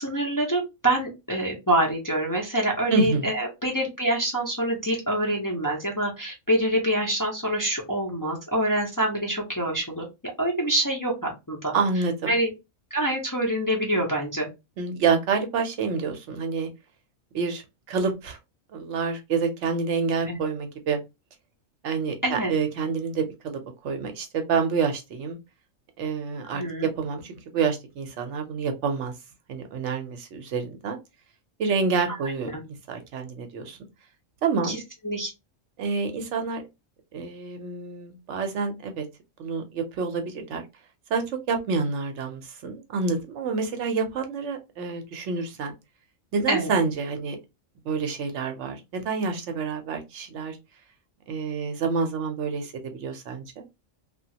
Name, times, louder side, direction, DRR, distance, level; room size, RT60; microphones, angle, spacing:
voice 1, 0.0-10.0 10.4-11.7 12.3-12.5 12.9-14.5 20.2-20.4 22.2-22.5 26.5-26.9 32.2-32.3 34.6-34.8 35.0-35.3 46.5-46.7, right 1 dB, 20° left, -2 dB, 0.6 m, -26 dB
voice 2, 2.9-3.3 11.7-12.3 14.8-16.7 17.3-18.4 18.7-21.0 21.8-25.4 26.0-29.1 29.5-31.0 31.6-33.8 34.4-34.8 35.8-36.6 37.1-39.1 39.4-40.6 41.1-45.7 46.3-47.4 47.8-50.6 51.3-53.6, right 5 dB, 70° right, 5 dB, 0.9 m, -28 dB
2.9 x 2.4 x 2.7 m, 0.23 s
omnidirectional pair, 1.3 m